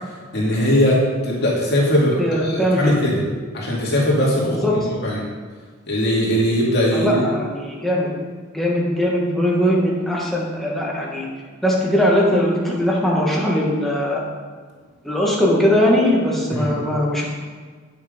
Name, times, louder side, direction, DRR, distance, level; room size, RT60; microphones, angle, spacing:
voice 1, 0.3-1.0 1.2-3.2 3.5-5.2 5.9-7.2 16.5-16.7, equal, 55° left, -4 dB, 2.4 m, -20 dB
voice 2, 2.2-3.0 4.4-4.8 6.9-8.1 8.5-11.3 11.6-14.2 15.0-17.4, equal, ahead, -4 dB, 1.6 m, -20 dB
8.8 x 6.6 x 5.2 m, 1.5 s
head